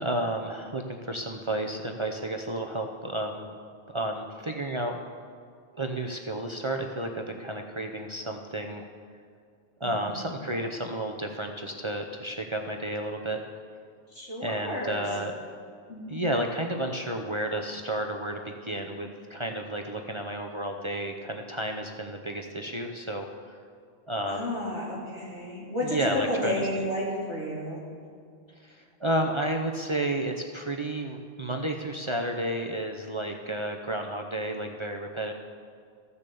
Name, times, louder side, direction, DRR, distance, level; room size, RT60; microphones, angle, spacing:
voice 1, 0.0-3.5 3.9-5.0 5.8-8.9 9.8-13.4 14.4-15.3 16.1-23.3 24.1-24.5 25.8-26.9 28.6-35.3, right 1 dB, 30° right, 3 dB, 0.6 m, -31 dB
voice 2, 9.8-10.2 14.1-15.1 15.9-16.2 24.3-26.0 26.3-27.8, left 1 dB, 80° left, -5 dB, 3.3 m, -32 dB
15.0 x 6.9 x 6.9 m, 2.2 s
omnidirectional pair, 1.2 m